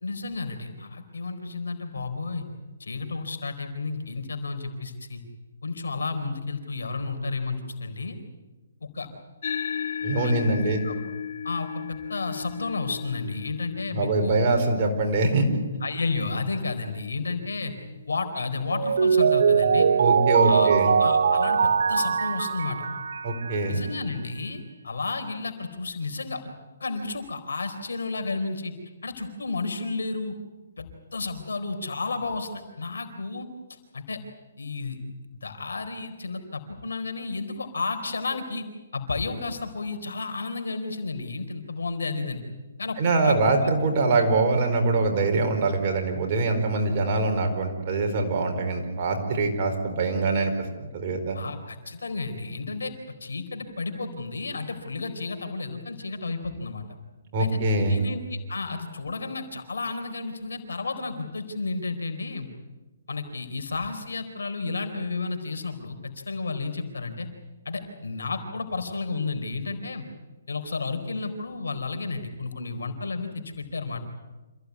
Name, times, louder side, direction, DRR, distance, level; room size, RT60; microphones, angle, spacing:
voice 1, 0.0-2.4 2.8-5.2 5.6-8.2 8.8-9.1 10.2-10.9 11.4-14.5 15.8-17.7 18.1-19.9 20.4-20.7 21.0-22.9 23.6-26.4 26.8-28.7 29.0-30.3 30.8-34.2 34.6-35.0 35.4-38.6 38.9-42.4 42.8-43.0 43.2-43.7 51.3-52.9 53.2-56.9 57.4-57.6 57.9-62.5 63.1-67.3 67.6-70.1 70.5-74.0, left 3 dB, 85° left, 6 dB, 4.3 m, -32 dB
sound 1, 9.4-18.2, left 7 dB, 60° left, 2.0 m, -36 dB
voice 2, 10.0-10.8 13.9-15.5 20.0-20.9 23.2-23.8 43.0-50.5 50.8-51.4 57.3-58.0, right 3 dB, 40° right, 4 dB, 4.6 m, -23 dB
Mallet percussion, 18.7-23.7, right 6 dB, 75° right, 1.1 m, -21 dB
27.0 x 16.0 x 9.7 m, 1.2 s
hypercardioid pair, 150°, 0 cm